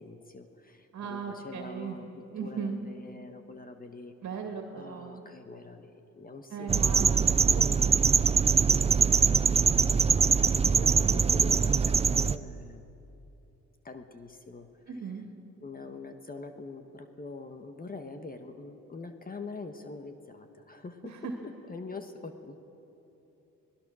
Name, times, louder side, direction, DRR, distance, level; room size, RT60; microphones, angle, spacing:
voice 1, 0.0-4.4 4.7-8.2 8.4-12.8 13.8-14.7 15.6-21.2 21.4-22.6, left 3 dB, 30° left, 7 dB, 1.4 m, -44 dB
voice 2, 0.9-2.0 2.3-2.8 4.2-5.2 6.5-7.5 14.9-15.2 21.0-21.3, right 6 dB, 65° right, 3 dB, 2.2 m, -37 dB
sound 1, 6.7-12.4, right 5 dB, 20° right, 0.5 m, -23 dB
25.5 x 19.5 x 6.3 m, 2.9 s
cardioid pair, 90°, 30 cm